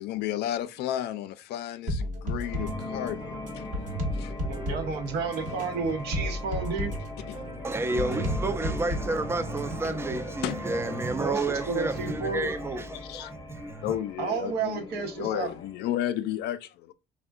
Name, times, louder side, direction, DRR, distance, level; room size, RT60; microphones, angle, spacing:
voice 1, 0.0-3.8 4.1-4.3 7.3-7.4 10.4-10.7 13.0-13.3 13.8-16.9, left 12 dB, 80° left, 0.4 m, -33 dB
sound 1, 1.9-10.3, equal, 50° right, 1.0 m, -33 dB
sound 2, 2.3-12.4, right 3 dB, 30° right, 0.9 m, -50 dB
sound 3, 2.5-15.7, left 2 dB, 25° left, 0.7 m, -40 dB
voice 2, 4.5-6.9 11.2-12.5 14.2-15.5, right 4 dB, 75° right, 0.8 m, -31 dB
voice 3, 7.6-13.9, right 2 dB, 15° right, 0.4 m, -30 dB
3.4 x 2.1 x 2.3 m
cardioid pair, 110°, 17 cm